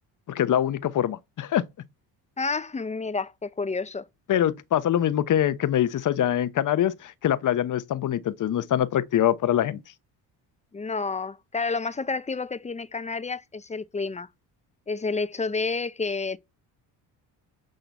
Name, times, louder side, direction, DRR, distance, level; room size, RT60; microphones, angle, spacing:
voice 1, 0.3-1.6 4.3-9.8, left 11 dB, 50° left, 0.9 m, -24 dB
voice 2, 2.4-4.0 10.7-14.3 14.9-16.4, left 4 dB, 15° left, 0.7 m, -30 dB
10.5 x 3.9 x 7.0 m
supercardioid pair, 85°, 40 cm